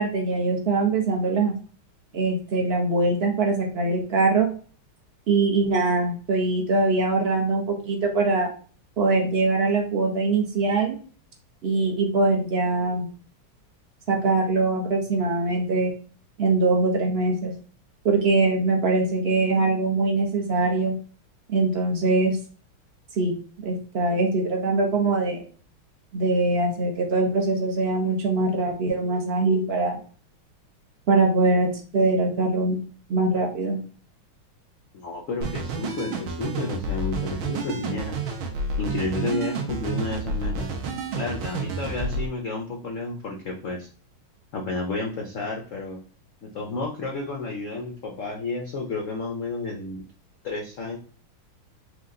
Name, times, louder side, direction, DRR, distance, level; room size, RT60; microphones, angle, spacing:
voice 1, 0.0-1.5 2.1-4.5 5.3-8.5 9.0-11.0 11.6-13.1 14.1-15.9 16.4-17.5 18.0-20.9 21.5-22.4 23.1-23.3 23.6-25.4 26.1-30.0 31.1-31.7 31.9-32.8 33.1-33.8, right 3 dB, 60° right, 1 dB, 0.6 m, -22 dB
voice 2, 34.9-38.2 38.8-40.7 41.1-43.9 44.5-46.0 46.4-50.0 50.4-51.0, left 3 dB, 75° left, 1 dB, 0.7 m, -31 dB
sound 1, 35.4-42.3, right 3 dB, 80° right, 1.6 m, -30 dB
4.9 x 2.3 x 3.7 m, 0.40 s
omnidirectional pair, 2.3 m